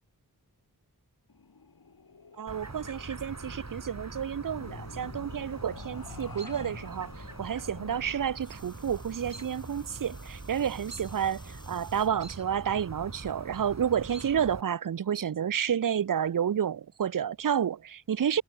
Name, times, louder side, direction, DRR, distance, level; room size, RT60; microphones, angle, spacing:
sound 1, 1.3-10.2, left 4 dB, 70° left, 1.4 m, -49 dB
voice 1, 2.4-7.1 7.4-18.4, right 8 dB, 60° right, 0.5 m, -30 dB
Chirp tweet, 2.5-14.6, right 2 dB, 45° right, 2.3 m, -43 dB
sound 2, 8.4-12.1 12.8-13.2 14.5-14.6, left 1 dB, 10° left, 3.6 m, -56 dB
wide cardioid pair, 45°, 37 cm